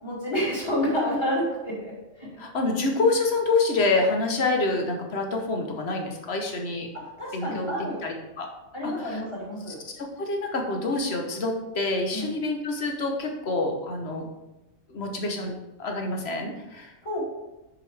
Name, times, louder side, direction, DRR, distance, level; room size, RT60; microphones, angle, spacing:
voice 1, 0.0-2.3 6.9-8.0 8.7-9.8 12.1-12.3 17.0-17.3, equal, 20° left, -6 dB, 2.6 m, -29 dB
voice 2, 2.4-6.9 7.3-7.7 8.0-8.5 8.8-9.2 9.7-14.3 14.9-15.5 15.8-16.9, left 3 dB, 50° left, 2 dB, 1.3 m, -27 dB
10.0 x 5.0 x 3.3 m, 1.0 s
omnidirectional pair, 1.5 m